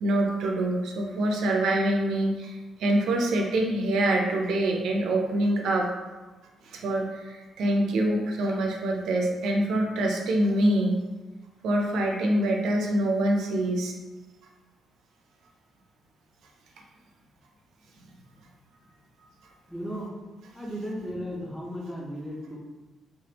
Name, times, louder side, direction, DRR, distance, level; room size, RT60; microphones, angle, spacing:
voice 1, 0.0-5.9 6.6-11.0 11.6-13.9, right 1 dB, 75° right, 1 dB, 0.5 m, -25 dB
voice 2, 19.7-20.1 20.5-22.6, equal, 5° left, -3 dB, 0.6 m, -35 dB
3.4 x 3.2 x 2.9 m, 1.2 s
cardioid pair, 180°, 0 cm